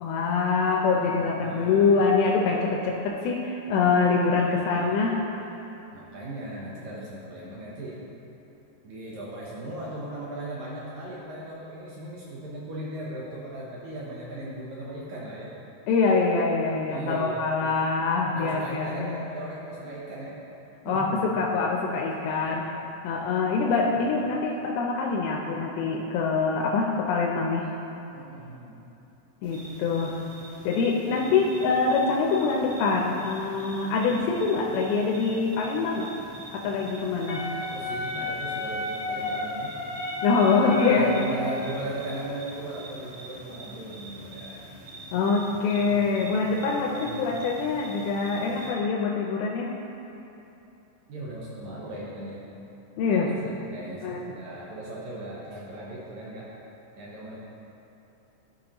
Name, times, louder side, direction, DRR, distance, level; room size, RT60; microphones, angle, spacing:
voice 1, 0.0-5.3 15.9-19.1 20.9-22.7 23.0-27.7 29.4-30.1 30.7-36.1 36.5-37.5 40.2-41.1 45.1-49.7 53.0-53.3 54.0-54.3, left 4 dB, 90° left, -1 dB, 2.5 m, -24 dB
voice 2, 1.1-2.0 4.4-4.9 5.9-8.0 8.8-15.5 16.9-17.5 18.4-20.4 20.9-21.3 22.3-22.7 23.5-24.0 28.1-28.8 34.1-34.4 37.5-39.8 40.7-44.7 45.5-46.0 46.8-47.2 51.1-52.4 53.1-56.5 57.0-57.4, right 1 dB, 75° right, -5 dB, 1.7 m, -38 dB
sound 1, 29.4-48.7, right 1 dB, 60° right, 3.0 m, -45 dB
Wind instrument woodwind instrument, 37.3-41.4, left 2 dB, 65° left, 1.2 m, -32 dB
12.0 x 5.6 x 2.9 m, 2.9 s
omnidirectional pair, 4.3 m